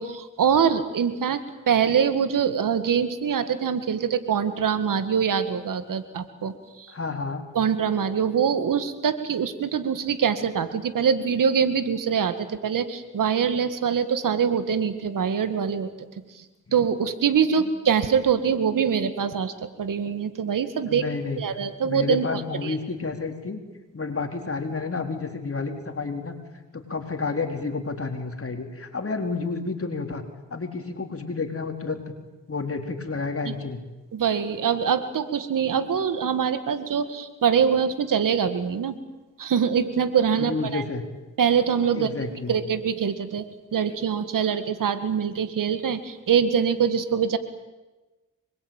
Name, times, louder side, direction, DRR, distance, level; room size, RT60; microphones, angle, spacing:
voice 1, 0.0-1.4 1.7-6.9 7.5-15.9 16.3-16.4 16.7-21.1 21.4-22.7 33.5-33.6 34.1-39.0 39.4-40.8 41.4-42.2 42.5-43.5 43.7-47.4, right 7 dB, 85° right, 11 dB, 2.0 m, -24 dB
voice 2, 6.9-7.4 17.6-17.7 20.9-21.4 21.8-23.6 23.9-26.3 26.7-30.2 30.5-32.1 32.5-33.8 40.4-41.0 41.9-42.6, left 4 dB, 45° left, 5 dB, 4.3 m, -30 dB
25.0 x 22.0 x 9.1 m, 1.1 s
cardioid pair, 50°, 31 cm